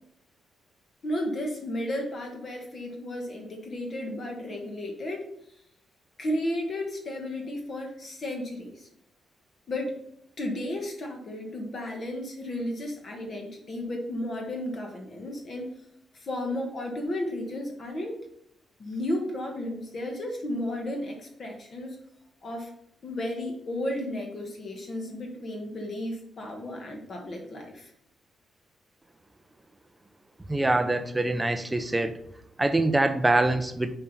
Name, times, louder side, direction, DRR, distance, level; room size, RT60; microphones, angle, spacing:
voice 1, 1.0-5.3 6.2-8.9 9.7-10.0 10.4-15.7 16.1-18.2 18.8-22.0 22.4-22.7 23.0-27.9, left 1 dB, 35° left, 1 dB, 1.2 m, -33 dB
voice 2, 30.5-32.2 32.6-34.0, right 2 dB, 10° right, 9 dB, 0.5 m, -24 dB
7.1 x 4.5 x 4.1 m, 0.75 s
wide cardioid pair, 165°, 0 cm